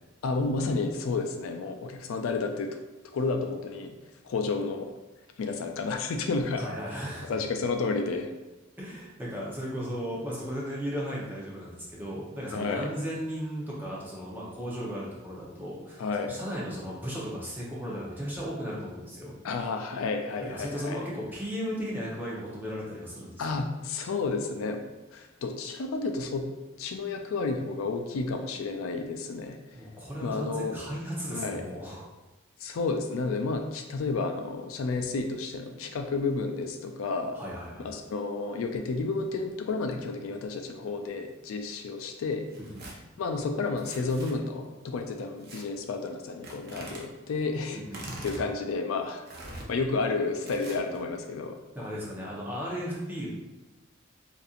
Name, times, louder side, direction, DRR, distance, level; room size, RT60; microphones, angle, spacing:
voice 1, 0.2-2.7 3.1-4.0 4.2-4.9 5.4-6.7 7.2-8.3 12.5-12.9 16.0-16.4 19.4-21.0 23.4-24.8 25.1-26.4 26.8-29.6 30.2-30.8 31.3-31.6 32.6-37.4 37.8-42.5 43.2-49.2 49.5-51.6, left 3 dB, 80° left, 5 dB, 0.4 m, -31 dB
voice 2, 6.6-7.3 8.8-19.4 20.4-23.5 29.7-32.1 37.3-37.9 42.7-42.8 47.7-48.2 51.7-53.3, equal, 10° right, -6 dB, 0.8 m, -36 dB
Tearing, 42.5-42.9 43.7-44.3 45.4-45.6 46.4-47.0 47.8-48.4 49.2-49.7 50.4-51.0, right 2 dB, 50° right, 0.6 m, -43 dB
4.1 x 2.6 x 2.5 m, 1.1 s
head